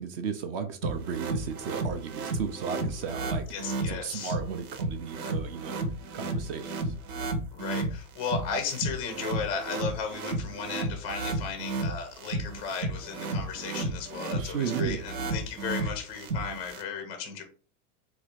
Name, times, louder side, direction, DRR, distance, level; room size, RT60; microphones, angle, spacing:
voice 1, 0.0-3.4 3.9-5.8 6.1-6.9 14.3-15.1, right 6 dB, 40° right, 7 dB, 0.5 m, -34 dB
sound 1, 0.8-16.8, right 2 dB, 75° right, 1.1 m, -33 dB
voice 2, 3.5-4.3 7.5-17.4, left 6 dB, 15° left, 6 dB, 0.4 m, -35 dB
4.0 x 2.4 x 4.5 m, 0.38 s
supercardioid pair, 160°, 44 cm